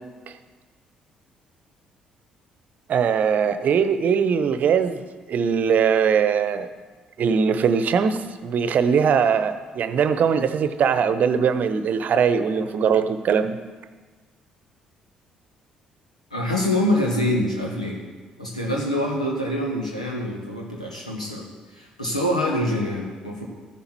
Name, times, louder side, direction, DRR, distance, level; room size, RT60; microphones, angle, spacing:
voice 1, 2.9-5.0 5.3-6.7 7.2-13.6, right 6 dB, 50° right, 11 dB, 0.8 m, -21 dB
voice 2, 16.3-18.0 18.4-23.5, left 1 dB, 90° left, -1 dB, 1.7 m, -25 dB
14.5 x 10.5 x 4.6 m, 1.4 s
figure-of-eight pair, 45°, 4 cm